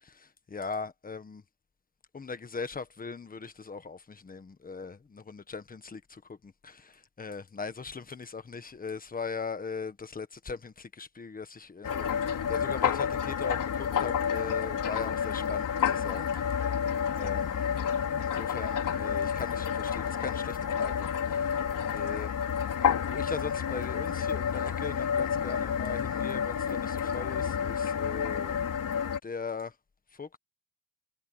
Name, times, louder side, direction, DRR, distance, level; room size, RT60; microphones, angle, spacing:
voice 1, 0.1-1.4 2.1-16.7 17.2-17.7 18.2-21.6 21.9-22.4 22.8-28.6 29.2-29.7 30.1-30.4, left 4 dB, 20° left, 1.4 m, -40 dB
sound 1, 11.8-29.2, left 7 dB, 45° left, 4.1 m, -30 dB
cardioid pair, 160°, 43 cm